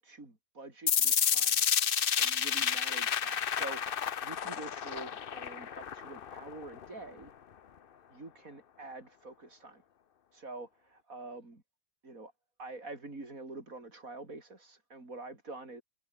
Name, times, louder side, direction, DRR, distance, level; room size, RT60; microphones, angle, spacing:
voice 1, 0.0-1.6 2.2-7.3 8.1-9.8 10.3-11.6 12.0-12.3 12.6-15.8, right 2 dB, 70° right, 5.7 m, -46 dB
sound 1, 0.9-6.9, left 8 dB, 45° left, 0.8 m, -30 dB
omnidirectional pair, 1.5 m